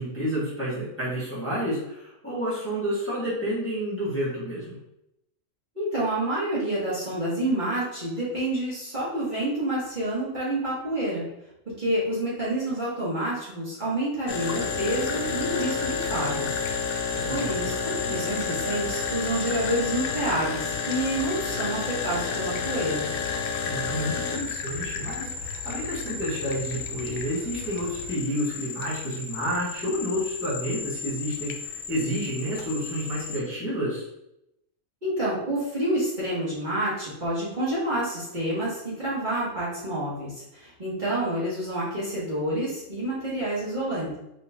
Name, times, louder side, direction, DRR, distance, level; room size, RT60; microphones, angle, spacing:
voice 1, 0.0-4.8 17.1-17.7 23.7-34.0, equal, 10° left, -9 dB, 1.5 m, -30 dB
voice 2, 5.7-11.2 11.8-16.5 16.9-23.1 35.0-44.2, right 1 dB, 35° right, -9 dB, 1.6 m, -28 dB
sound 1, 14.3-33.4, left 5 dB, 70° left, 0.5 m, -31 dB
sound 2, 14.6-28.1, left 4 dB, 90° left, 1.1 m, -42 dB
4.3 x 3.9 x 2.8 m, 0.83 s
omnidirectional pair, 1.5 m